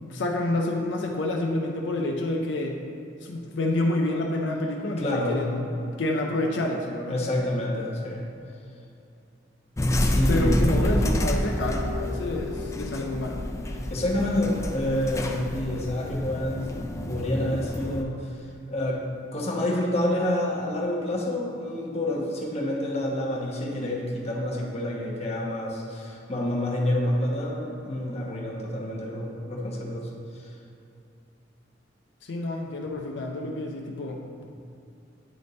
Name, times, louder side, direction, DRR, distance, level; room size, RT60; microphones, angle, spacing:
voice 1, 0.0-2.8 3.2-5.6 6.0-7.2 10.3-13.4 32.2-34.2, left 1 dB, 80° left, 1 dB, 0.5 m, -28 dB
voice 2, 5.0-5.4 7.1-8.2 10.1-10.8 13.9-18.4 18.7-19.0 19.3-30.1 30.3-30.5, left 1 dB, 35° left, -3 dB, 1.0 m, -28 dB
sound 1, 9.8-18.0, left 1 dB, 15° left, 0.4 m, -28 dB
Keyboard (musical), 11.6-14.8, left 7 dB, 65° right, 0.7 m, -41 dB
9.8 x 3.5 x 3.9 m, 2.7 s
head